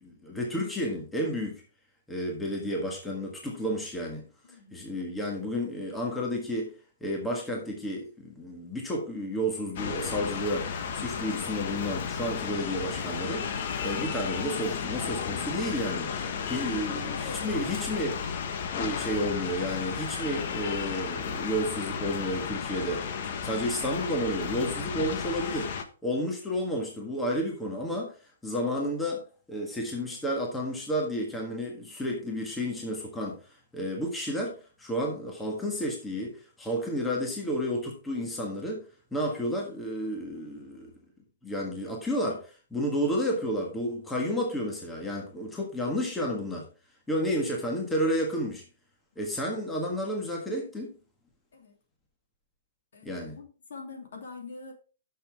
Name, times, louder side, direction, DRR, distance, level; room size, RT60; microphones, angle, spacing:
voice 1, 0.0-1.6 2.1-4.2 4.7-6.7 7.0-18.2 18.7-25.7 26.0-28.1 28.4-29.2 29.5-33.4 33.7-38.8 39.1-40.9 41.4-46.7 47.1-48.6 49.1-51.0 53.0-53.4, equal, 5° left, 0 dB, 1.6 m, -31 dB
voice 2, 4.5-4.9 16.7-16.8 51.5-51.7 52.9-54.7, left 4 dB, 65° left, 2 dB, 3.0 m, -45 dB
sound 1, 9.8-25.8, left 6 dB, 45° left, 1.1 m, -33 dB
10.0 x 6.7 x 3.5 m, 0.36 s
hypercardioid pair, 165°, 0 cm